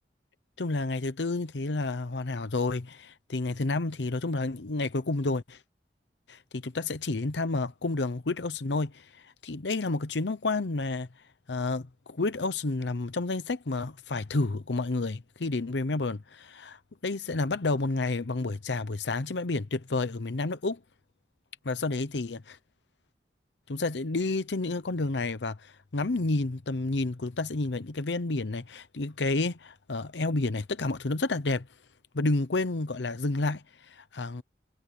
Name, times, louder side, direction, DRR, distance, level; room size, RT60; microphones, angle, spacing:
voice 1, 0.6-5.6 6.3-11.1 11.5-20.8 21.6-22.6 23.7-31.7 32.1-34.4, left 3 dB, 90° left, 0.8 m, -30 dB
head